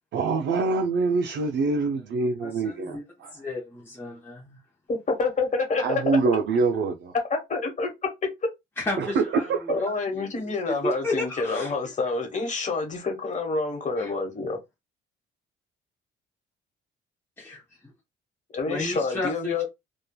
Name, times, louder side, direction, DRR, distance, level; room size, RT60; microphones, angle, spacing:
voice 1, 0.1-3.0 5.8-7.1 9.0-9.7, right 4 dB, 65° right, 0.4 m, -25 dB
voice 2, 2.4-4.6 8.8-10.5 10.8-11.7 14.0-14.1 17.4-17.6 18.7-19.7, left 2 dB, 10° left, 0.7 m, -33 dB
voice 3, 4.9-6.0 7.3-7.9 9.7-14.6 18.5-19.7, left 3 dB, 40° left, 1.0 m, -28 dB
2.9 x 2.2 x 2.2 m
cardioid pair, 90°, 20 cm